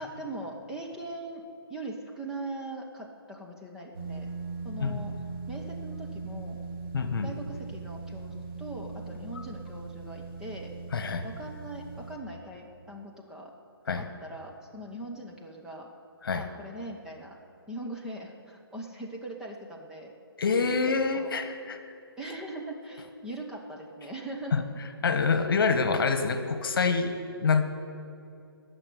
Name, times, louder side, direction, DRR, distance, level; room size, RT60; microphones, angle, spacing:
voice 1, 0.0-1.4 1.7-4.3 4.6-5.1 5.5-6.6 7.2-10.7 11.2-13.5 13.8-15.9 16.3-17.4 17.7-20.1 20.9-21.3 22.2-24.6, right 1 dB, 5° right, -2 dB, 1.0 m, -40 dB
sound 1, 3.9-12.1, right 4 dB, 60° right, 3.8 m, -39 dB
voice 2, 6.9-7.3 9.3-9.4 10.9-11.2 13.9-14.0 16.2-16.4 20.4-21.8 24.5-24.6 25.0-27.7, left 5 dB, 60° left, 8 dB, 1.3 m, -26 dB
16.0 x 6.8 x 9.3 m, 2.6 s
hypercardioid pair, 150°, 13 cm